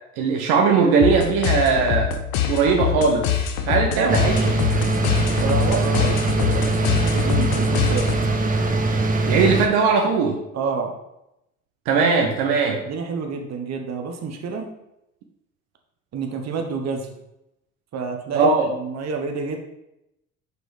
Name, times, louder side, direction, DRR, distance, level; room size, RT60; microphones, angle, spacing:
voice 1, 0.2-2.1 2.5-3.4 3.7-4.5 9.3-10.4 11.9-12.8 18.3-18.7, right 5 dB, 65° right, 1 dB, 1.0 m, -19 dB
sound 1, 1.0-8.4, left 9 dB, 65° left, 0.9 m, -25 dB
voice 2, 3.9-4.3 5.4-8.1 10.5-10.9 12.7-14.7 16.1-17.1 17.9-19.6, right 5 dB, 40° right, 3 dB, 1.2 m, -28 dB
sound 2, 4.1-9.7, right 2 dB, 20° right, 1.0 m, -22 dB
6.7 x 4.7 x 3.4 m, 0.85 s
hypercardioid pair, 65°, 40 cm